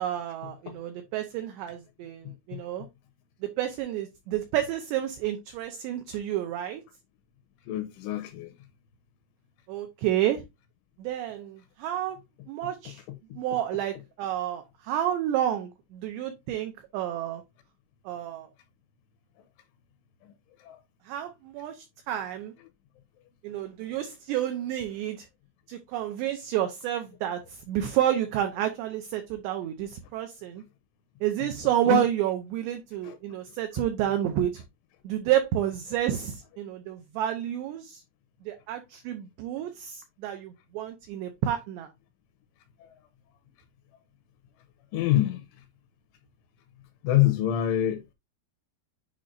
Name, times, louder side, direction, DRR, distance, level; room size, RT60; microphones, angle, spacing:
voice 1, 0.0-2.9 3.4-6.8 9.7-10.4 11.0-12.2 12.5-13.0 13.3-17.4 18.1-18.5 21.1-22.5 23.4-25.3 25.7-30.6 31.2-34.6 35.0-38.0 38.4-41.9, right 11 dB, 85° right, 2.4 m, -30 dB
voice 2, 7.7-8.5 31.9-32.0 44.9-45.4 47.0-48.1, left 13 dB, 80° left, 2.9 m, -25 dB
8.8 x 5.2 x 2.5 m
omnidirectional pair, 5.9 m